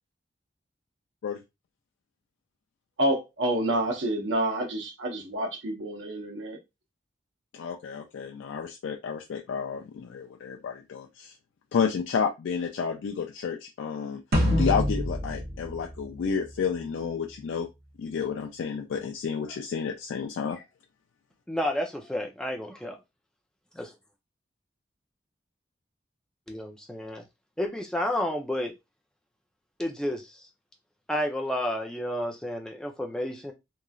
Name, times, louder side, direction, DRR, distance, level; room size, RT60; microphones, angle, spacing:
voice 1, 3.0-6.6, right 1 dB, 90° right, 0.8 m, -28 dB
voice 2, 7.5-11.3 11.7-14.2 14.6-17.7 18.0-20.6, left 6 dB, 85° left, 0.3 m, -31 dB
sound 1, 14.3-16.8, left 1 dB, 55° right, 0.8 m, -26 dB
voice 3, 21.5-23.0 23.8-23.9 26.5-27.2 27.6-28.7 29.8-30.5 31.1-33.5, left 1 dB, 5° left, 0.4 m, -31 dB
3.0 x 2.4 x 2.3 m
head